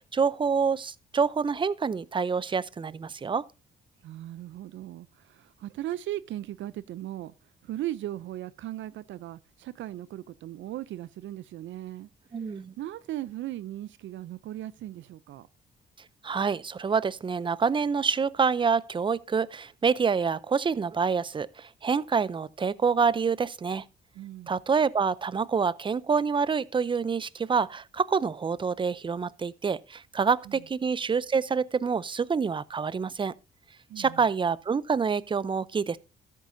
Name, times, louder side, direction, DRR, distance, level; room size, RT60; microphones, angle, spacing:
voice 1, 0.0-3.4 12.3-12.7 16.2-23.8 24.5-33.3 34.0-36.0, right 5 dB, 25° right, 0.5 m, -27 dB
voice 2, 4.0-7.3 7.6-12.1 12.5-15.5 24.1-24.6 30.5-30.6 33.9-34.3, right 13 dB, 75° right, 0.5 m, -38 dB
13.0 x 8.3 x 2.6 m
cardioid pair, 90°, 20 cm